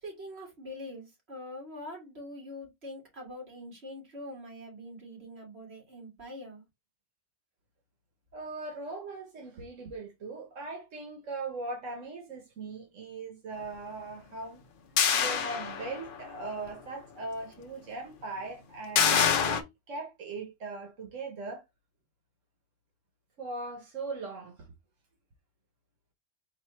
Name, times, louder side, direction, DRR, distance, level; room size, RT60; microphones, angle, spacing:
voice 1, 0.0-6.6, left 1 dB, 55° right, 2.3 m, -44 dB
voice 2, 8.3-14.6 15.1-21.6 23.4-24.6, right 3 dB, 90° right, 1.4 m, -39 dB
sound 1, 15.0-16.2 16.7-16.8 18.9-19.6, left 7 dB, 55° left, 0.7 m, -25 dB
4.1 x 2.5 x 4.3 m
omnidirectional pair, 1.3 m